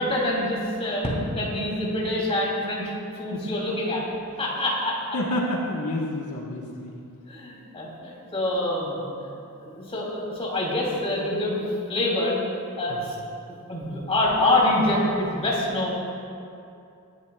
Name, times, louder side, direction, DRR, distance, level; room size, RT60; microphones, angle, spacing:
voice 1, 0.0-2.9 3.2-4.0 4.4-5.2 7.3-9.0 9.6-12.4 12.8-13.2 13.5-15.9, left 1 dB, 25° left, -4 dB, 3.0 m, -26 dB
voice 2, 5.1-6.9 12.9-13.0, left 1 dB, 80° left, -3 dB, 1.4 m, -29 dB
21.0 x 11.0 x 2.4 m, 2.6 s
head